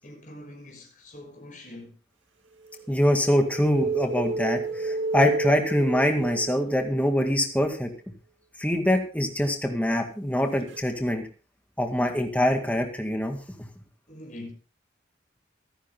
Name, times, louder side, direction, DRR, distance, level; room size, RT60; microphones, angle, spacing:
voice 1, 0.0-1.9 14.1-14.5, left 1 dB, 45° left, 6.1 m, -43 dB
sound 1, 2.7-7.4 10.7-10.8, right 3 dB, 85° right, 1.8 m, -30 dB
voice 2, 2.9-7.9 8.6-11.3 11.8-13.7, equal, 10° left, 2.0 m, -24 dB
25.5 x 10.0 x 2.2 m
head